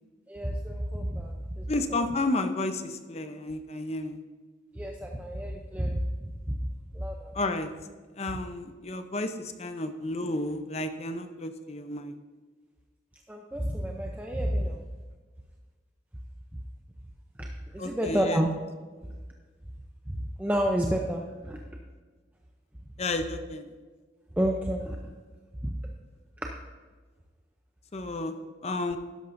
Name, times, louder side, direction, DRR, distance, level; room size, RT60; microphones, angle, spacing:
voice 1, 0.3-2.0 4.8-6.6 6.9-7.3 13.3-14.8 17.4-18.5 20.1-21.6 24.4-25.1 25.6-25.8 26.4-26.5, equal, 10° right, 1 dB, 0.5 m, -30 dB
voice 2, 1.7-4.2 7.3-7.7 8.2-12.1 17.8-18.4 23.0-23.7 27.9-28.3 28.6-29.0, left 2 dB, 35° left, 8 dB, 0.6 m, -31 dB
12.5 x 10.5 x 2.6 m, 1.4 s
head